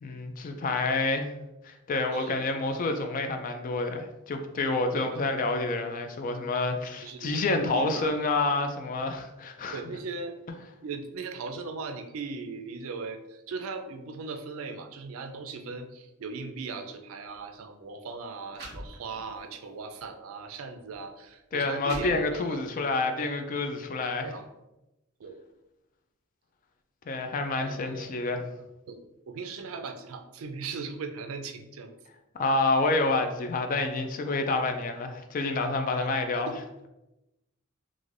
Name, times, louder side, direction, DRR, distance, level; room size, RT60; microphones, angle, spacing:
voice 1, 0.0-1.3 1.6-9.8 21.5-24.3 27.1-28.4 32.3-36.5, left 3 dB, 40° left, 6 dB, 0.3 m, -28 dB
voice 2, 7.0-8.2 9.7-10.4 10.8-22.9 24.2-24.5 25.2-25.4 27.6-29.0 29.3-31.9 36.0-36.1 36.5-36.6, right 4 dB, 80° right, 6 dB, 0.4 m, -39 dB
sound 1, 17.2-17.4 18.2-18.3 18.5-19.4 20.0-20.1 20.9-21.0 21.5-22.7, right 1 dB, 55° right, 1.0 m, -44 dB
3.2 x 2.5 x 2.5 m, 0.95 s
head